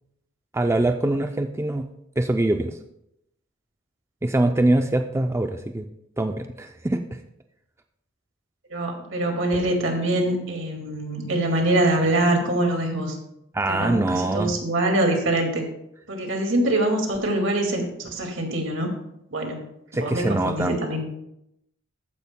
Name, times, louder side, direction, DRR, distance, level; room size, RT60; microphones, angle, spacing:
voice 1, 0.5-1.9 2.2-2.8 4.2-5.9 6.2-7.0 13.5-14.5 19.9-20.7, right 2 dB, 15° right, 6 dB, 0.4 m, -23 dB
voice 2, 8.7-13.2 13.7-15.6 16.1-18.9 19.3-19.6 19.9-21.0, right 1 dB, 70° right, 2 dB, 2.1 m, -24 dB
14.0 x 9.9 x 2.2 m, 0.80 s
head